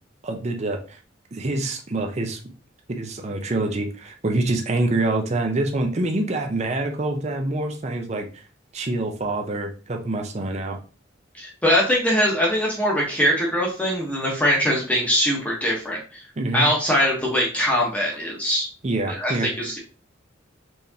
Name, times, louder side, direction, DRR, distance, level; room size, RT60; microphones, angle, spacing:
voice 1, 0.2-1.0 1.3-2.4 2.9-8.4 8.7-10.8 16.4-16.7 18.8-19.5, right 2 dB, 35° right, 3 dB, 0.6 m, -26 dB
voice 2, 11.4-16.2 16.5-18.7 19.1-19.8, equal, 5° left, -3 dB, 1.0 m, -22 dB
4.5 x 3.3 x 2.7 m, 0.36 s
head